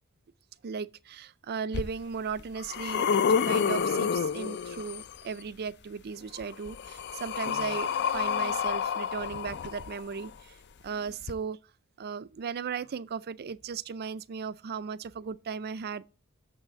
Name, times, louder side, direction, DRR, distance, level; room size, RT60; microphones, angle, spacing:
voice 1, 0.6-10.6 10.8-11.6 12.0-16.0, right 6 dB, 45° right, 0.4 m, -36 dB
sound 1, 1.7-1.8 2.4-5.2 6.4-10.3 11.2-11.3, left 6 dB, 55° left, 0.5 m, -29 dB
7.0 x 5.7 x 6.7 m
head